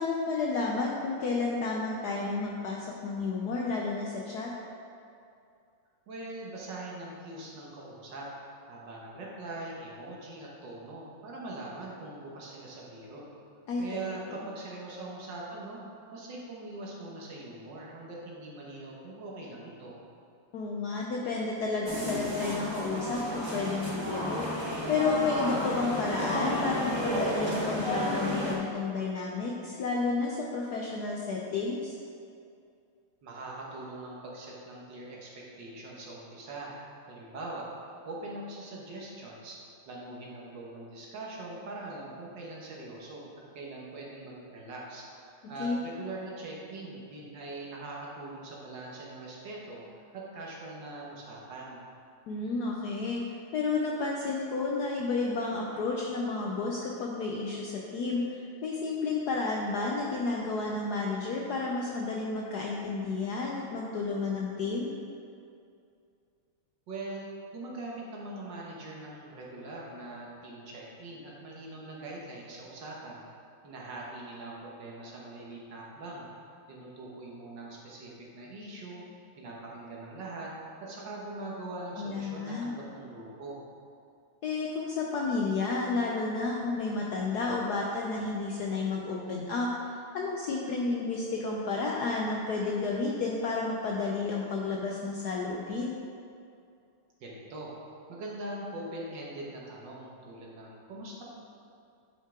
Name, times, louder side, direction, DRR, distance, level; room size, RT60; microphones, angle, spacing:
voice 1, 0.0-4.5 13.7-13.8 14.3-14.4 20.5-32.0 45.4-45.8 52.3-53.2 53.5-64.9 82.0-82.7 84.4-95.9, left 3 dB, 70° left, -2 dB, 0.9 m, -31 dB
voice 2, 6.1-8.3 8.7-13.3 13.8-15.8 16.1-20.0 33.2-36.7 37.1-37.7 38.1-39.6 39.9-43.3 43.6-49.8 50.1-51.9 66.9-73.3 73.6-79.0 79.4-80.5 80.8-83.6 97.2-97.7 98.1-101.2, right 2 dB, 60° right, -4 dB, 1.8 m, -42 dB
sound 1, 21.9-28.5, equal, 40° right, 0.3 m, -32 dB
9.2 x 5.5 x 3.7 m, 2.5 s
omnidirectional pair, 2.3 m